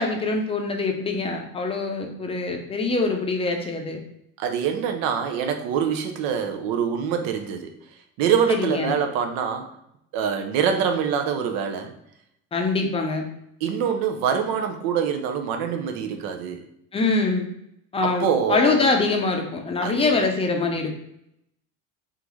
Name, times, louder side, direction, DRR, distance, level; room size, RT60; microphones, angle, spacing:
voice 1, 0.0-4.0 8.5-8.9 12.5-13.2 16.9-17.5 17.9-20.9, left 3 dB, 15° left, 3 dB, 0.5 m, -24 dB
voice 2, 4.4-7.8 8.2-9.7 10.1-11.9 13.6-16.6 18.0-18.8 19.8-20.2, right 7 dB, 85° right, 6 dB, 0.8 m, -25 dB
3.9 x 3.6 x 3.0 m, 0.77 s
cardioid pair, 165°, 35 cm